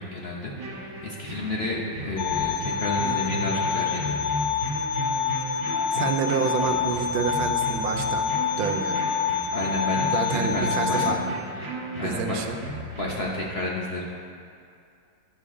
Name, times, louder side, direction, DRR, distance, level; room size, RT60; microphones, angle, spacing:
voice 1, 0.0-4.1 9.5-11.2 11.5-12.4 12.9-14.0, left 2 dB, 45° left, -4 dB, 0.9 m, -31 dB
sound 1, 0.5-13.2, right 1 dB, 50° right, 1.9 m, -35 dB
sound 2, 2.2-11.1, left 7 dB, 70° left, 0.9 m, -27 dB
voice 2, 5.9-8.2 8.6-9.0 10.1-11.2 12.0-12.6, right 6 dB, 85° right, 6 dB, 1.4 m, -28 dB
11.0 x 6.8 x 3.7 m, 2.5 s
omnidirectional pair, 2.0 m